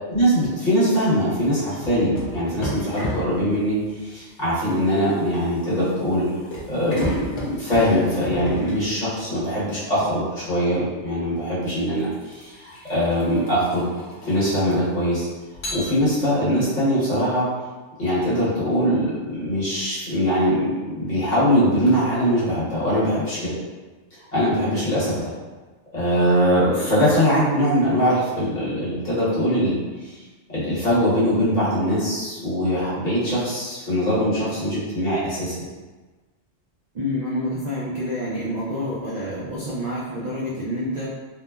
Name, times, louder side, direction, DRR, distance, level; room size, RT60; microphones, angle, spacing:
voice 1, 0.1-3.8 4.0-6.2 6.7-13.9 14.2-15.3 15.7-17.5 18.0-23.5 24.3-25.3 25.9-29.8 30.0-30.1 30.5-35.5, equal, 40° left, -10 dB, 1.0 m, -22 dB
sound 1, 1.8-9.4 10.8-11.0 11.7-15.0 15.5-16.4, equal, 80° left, 1.0 m, -34 dB
voice 2, 36.9-41.1, left 1 dB, 65° right, -7 dB, 0.4 m, -28 dB
3.1 x 2.0 x 2.2 m, 1.3 s
omnidirectional pair, 1.2 m